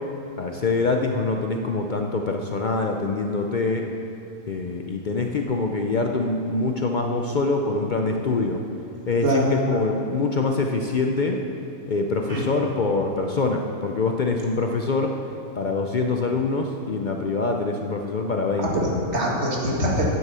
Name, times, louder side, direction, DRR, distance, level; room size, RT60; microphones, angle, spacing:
voice 1, 0.4-3.9 4.5-8.6 9.1-11.4 11.9-15.1 15.6-19.0, left 3 dB, 60° left, 3 dB, 0.5 m, -24 dB
voice 2, 9.2-9.8 12.3-12.6 18.6-20.1, equal, 55° right, -3 dB, 2.1 m, -24 dB
9.5 x 7.7 x 6.7 m, 2.6 s
omnidirectional pair, 1.5 m